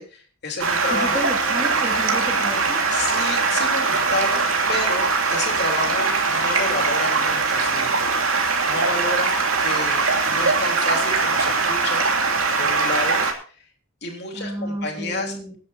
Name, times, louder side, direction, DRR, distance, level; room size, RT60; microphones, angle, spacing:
voice 1, 0.0-1.2 1.8-1.9 2.9-8.1 8.7-12.1 12.6-13.2 14.0-15.6, left 2 dB, 50° left, 2 dB, 3.6 m, -30 dB
Stream, 0.6-13.3, right 4 dB, 75° right, 2.8 m, -21 dB
voice 2, 0.9-2.8 14.3-15.5, equal, 15° right, 1 dB, 2.3 m, -31 dB
23.5 x 10.5 x 2.8 m, 0.41 s
head